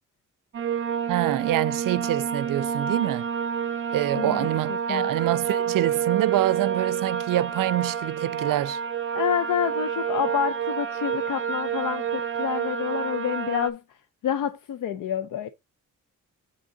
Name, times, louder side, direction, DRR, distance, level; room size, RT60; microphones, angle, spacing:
sound 1, 0.5-13.7, right 8 dB, 40° right, 0.6 m, -28 dB
voice 1, 1.1-3.3 3.9-8.8, right 14 dB, 80° right, 0.5 m, -26 dB
voice 2, 4.1-5.1 9.1-13.8 14.2-15.5, left 9 dB, 80° left, 0.6 m, -28 dB
7.7 x 3.6 x 3.9 m
wide cardioid pair, 150°, 32 cm